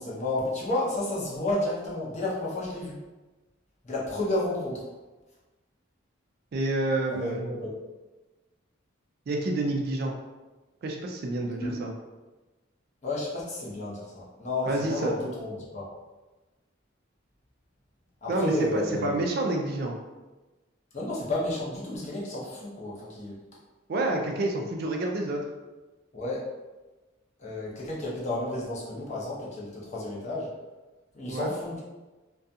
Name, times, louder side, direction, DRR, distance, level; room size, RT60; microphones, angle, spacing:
voice 1, 0.0-3.0 3.8-4.8 7.1-7.7 11.6-11.8 13.0-15.9 18.2-19.2 20.9-23.4 26.1-26.4 27.4-30.5 31.1-31.8, left 1 dB, 35° left, -5 dB, 0.6 m, -31 dB
voice 2, 6.5-7.5 9.3-10.1 10.8-11.9 14.7-15.2 18.3-20.0 23.9-25.4 31.3-31.5, right 2 dB, 50° right, 2 dB, 0.3 m, -28 dB
2.4 x 2.2 x 2.6 m, 1.2 s
head